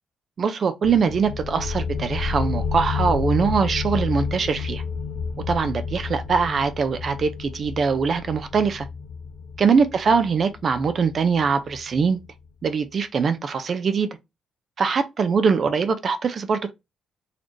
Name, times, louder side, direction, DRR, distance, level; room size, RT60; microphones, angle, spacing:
voice 1, 0.4-4.8 5.5-8.9 9.6-12.2 12.6-14.1 14.8-16.7, right 5 dB, 45° right, 0.4 m, -22 dB
sound 1, 0.8-12.2, left 5 dB, 75° left, 0.4 m, -30 dB
4.0 x 3.1 x 2.5 m
cardioid pair, 130°, 0 cm